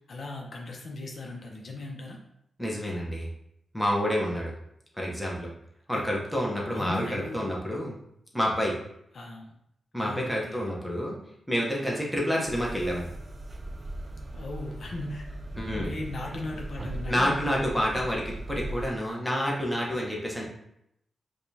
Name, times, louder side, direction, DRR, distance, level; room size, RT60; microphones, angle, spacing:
voice 1, 0.1-2.2 5.9-6.1 6.7-7.5 9.1-9.5 10.0-10.7 14.3-15.3 15.5-17.6, left 2 dB, 55° left, -1 dB, 0.7 m, -38 dB
voice 2, 2.6-3.3 3.7-4.5 5.0-5.5 5.9-8.0 8.3-8.8 9.9-11.2 11.5-13.1 15.6-15.9 17.1-20.4, equal, ahead, -3 dB, 0.7 m, -28 dB
sound 1, 12.4-18.9, right 1 dB, 35° right, 0.4 m, -38 dB
4.8 x 2.3 x 2.7 m, 0.77 s
wide cardioid pair, 120°, 0 cm